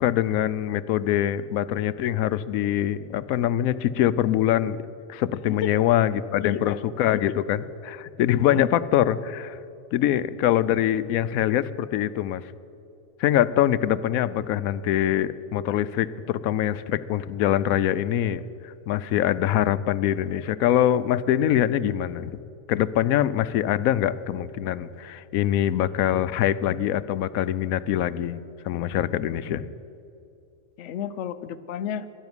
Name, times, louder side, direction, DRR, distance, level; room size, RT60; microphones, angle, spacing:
voice 1, 0.0-4.8 5.1-9.6 9.9-12.5 13.2-22.4 22.7-28.4 28.6-29.7, left 11 dB, 90° left, 16 dB, 1.0 m, -24 dB
voice 2, 6.4-6.8 7.1-7.2 8.4-8.7 30.8-32.1, left 9 dB, 65° left, 11 dB, 0.9 m, -31 dB
12.0 x 11.5 x 9.6 m, 2.6 s
omnidirectional pair, 1.4 m